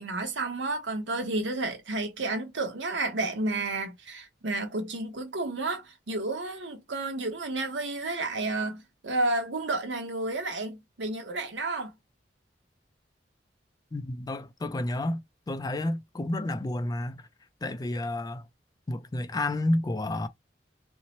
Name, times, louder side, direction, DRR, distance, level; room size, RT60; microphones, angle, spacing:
voice 1, 0.0-11.9, right 2 dB, 85° right, 0.9 m, -31 dB
voice 2, 13.9-17.2 17.6-18.5 18.9-20.3, left 1 dB, 20° left, 0.3 m, -30 dB
2.7 x 2.0 x 2.8 m
head